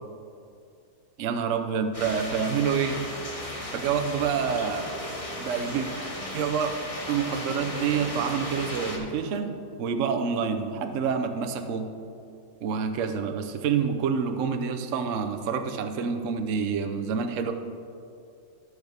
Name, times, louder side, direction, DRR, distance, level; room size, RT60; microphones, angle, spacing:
voice 1, 1.2-3.0 3.7-5.0 5.4-5.9 6.3-6.7 7.1-11.9 12.6-17.5, right 6 dB, 70° right, 6 dB, 0.7 m, -27 dB
sound 1, 1.9-9.0, left 1 dB, 20° left, 1.0 m, -36 dB
18.5 x 6.4 x 3.5 m, 2.5 s
omnidirectional pair, 2.2 m